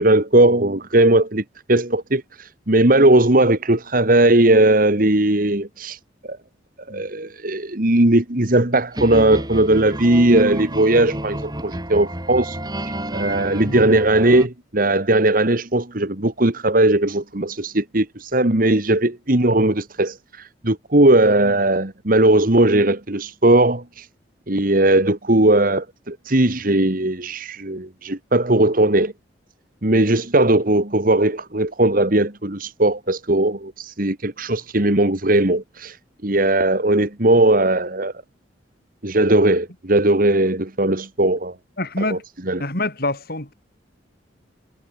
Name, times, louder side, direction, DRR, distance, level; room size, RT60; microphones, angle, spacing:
voice 1, 0.0-6.4 6.9-12.6 12.8-24.1 24.5-29.1 29.8-36.0 36.2-38.1 39.0-41.6 42.0-42.2 42.5-42.7, right 1 dB, 50° right, 2.2 m, -18 dB
sound 1, 8.9-14.5, right 1 dB, 20° right, 7.0 m, -30 dB
voice 2, 41.8-42.2 42.6-43.5, left 2 dB, 55° left, 4.2 m, -26 dB
head